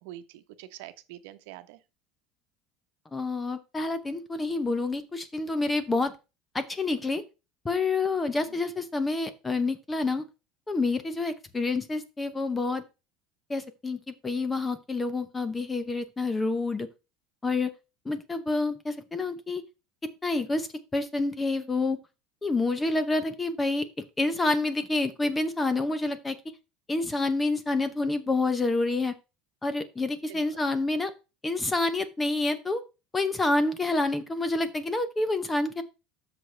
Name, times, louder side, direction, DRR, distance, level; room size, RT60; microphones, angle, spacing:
voice 1, 0.0-1.8 8.3-8.6 30.3-30.4, right 13 dB, 75° right, 0.9 m, -45 dB
voice 2, 3.1-6.1 6.5-7.2 7.6-10.2 10.7-12.8 13.5-16.9 17.4-17.7 18.0-19.6 20.2-20.7 20.9-22.0 22.4-23.9 24.2-26.4 26.9-29.1 29.6-31.1 31.4-32.8 33.1-35.8, left 3 dB, 10° left, 0.8 m, -28 dB
13.0 x 6.0 x 3.3 m
cardioid pair, 165°, 0 cm